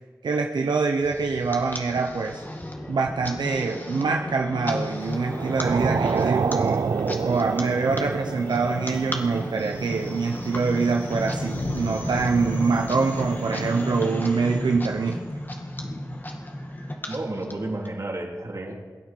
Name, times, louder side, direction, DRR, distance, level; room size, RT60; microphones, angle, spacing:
voice 1, 0.2-2.4 2.9-6.8 7.2-15.2, right 4 dB, 85° right, 2 dB, 0.8 m, -25 dB
sound 1, 1.0-17.9, left 1 dB, 25° left, 2.2 m, -33 dB
sound 2, 4.8-13.4, left 2 dB, 80° left, 1.8 m, -41 dB
sound 3, 5.2-13.9, right 5 dB, 70° right, 0.4 m, -30 dB
voice 2, 17.1-18.7, right 2 dB, 45° right, -1 dB, 3.6 m, -31 dB
22.5 x 9.3 x 4.6 m, 1.5 s
cardioid pair, 45°, 7 cm